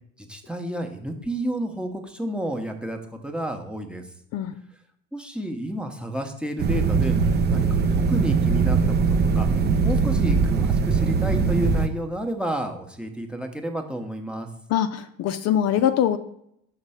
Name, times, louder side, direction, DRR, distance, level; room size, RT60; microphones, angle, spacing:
voice 1, 0.2-4.0 5.1-7.1 7.5-8.8 9.1-9.5 9.8-14.5, right 1 dB, 5° right, 4 dB, 0.8 m, -31 dB
sound 1, 6.6-11.9, right 5 dB, 35° right, 0.5 m, -21 dB
voice 2, 14.7-16.2, left 10 dB, 55° left, 10 dB, 0.5 m, -23 dB
5.9 x 3.3 x 5.6 m, 0.73 s
supercardioid pair, 105°, 31 cm